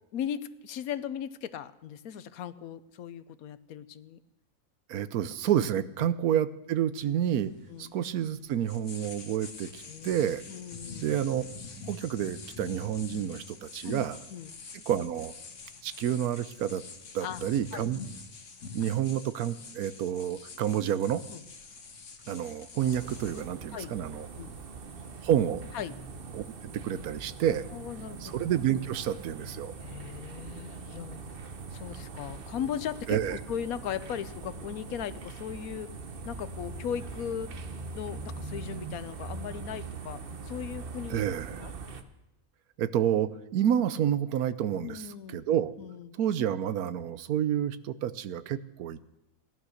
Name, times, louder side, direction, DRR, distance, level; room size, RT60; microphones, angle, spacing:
voice 1, 0.1-4.2 6.0-6.1 7.7-7.9 9.9-10.1 10.5-11.1 13.8-14.0 14.3-14.6 17.2-17.4 17.7-17.8 21.3-21.4 23.7-23.9 24.4-24.6 25.7-26.0 27.7-28.4 29.8-36.0 36.2-37.5 37.9-41.2 41.6-41.7 44.8-45.4 45.8-46.1, left 9 dB, 80° left, 14 dB, 1.2 m, -38 dB
voice 2, 4.9-7.5 7.8-10.4 11.0-11.4 11.9-14.2 14.7-15.3 15.8-16.8 17.1-18.0 18.7-21.2 22.3-24.3 25.2-25.6 26.3-27.7 28.2-29.7 33.1-33.4 41.1-41.6 42.8-45.0 45.3-45.7 46.2-49.1, right 10 dB, 85° right, 15 dB, 1.2 m, -29 dB
sound 1, 7.0-25.5, left 4 dB, 55° left, 1.7 m, -47 dB
sound 2, 22.8-42.0, right 4 dB, 45° right, 1.1 m, -42 dB
16.5 x 11.0 x 6.5 m, 0.95 s
omnidirectional pair, 1.5 m